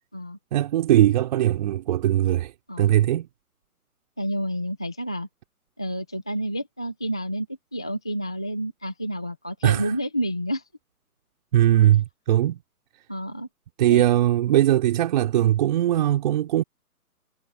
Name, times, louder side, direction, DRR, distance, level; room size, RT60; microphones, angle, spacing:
voice 1, 0.5-2.5 2.8-3.3 9.6-9.9 11.5-12.6 13.8-16.6, right 12 dB, 30° right, 4.3 m, -20 dB
voice 2, 4.2-5.3 5.8-7.5 7.7-10.6 13.1-13.5 13.9-14.0, equal, 5° left, 0.6 m, -29 dB
figure-of-eight pair, 145°, 45 cm